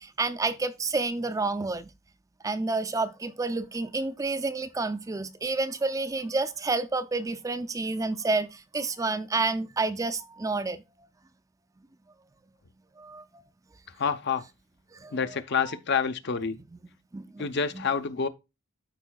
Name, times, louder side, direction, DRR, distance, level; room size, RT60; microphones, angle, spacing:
voice 1, 0.0-1.9 2.4-10.8 13.0-13.2 14.9-15.2 17.1-17.5 17.7-17.9, right 3 dB, 15° right, 0.4 m, -29 dB
voice 2, 14.0-14.4 15.1-16.6 17.4-18.3, left 6 dB, 55° left, 0.7 m, -28 dB
13.0 x 4.5 x 2.2 m
head